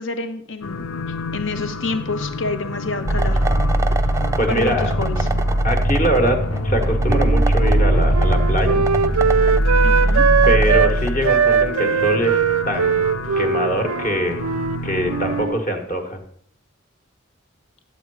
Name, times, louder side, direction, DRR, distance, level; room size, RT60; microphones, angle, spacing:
voice 1, 0.0-3.4 3.9-4.1 4.4-5.3 9.8-10.2, left 3 dB, 60° left, 7 dB, 1.1 m, -28 dB
sound 1, 0.6-15.5, left 3 dB, 80° left, 0.7 m, -29 dB
sound 2, 3.1-11.7, right 1 dB, 15° right, 0.5 m, -20 dB
voice 2, 4.4-4.9 5.6-8.8 10.5-12.4 12.6-13.0 13.4-14.4 14.8-16.2, equal, 35° left, 4 dB, 1.5 m, -23 dB
Wind instrument woodwind instrument, 7.1-10.9 11.2-14.8 15.1-15.6, right 6 dB, 80° right, 0.4 m, -20 dB
10.5 x 7.8 x 4.8 m, 0.62 s
head